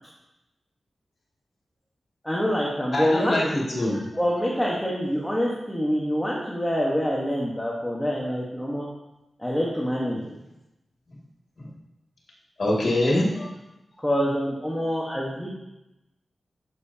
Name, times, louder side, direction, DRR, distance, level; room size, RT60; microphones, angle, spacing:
voice 1, 2.2-3.6 4.2-8.9 9.4-10.2 14.0-15.5, equal, 5° left, -5 dB, 1.3 m, -26 dB
voice 2, 2.9-4.0 11.6-11.7 12.6-13.5, left 1 dB, 55° left, -4 dB, 2.4 m, -24 dB
12.5 x 6.7 x 2.8 m, 0.95 s
wide cardioid pair, 140°, 0 cm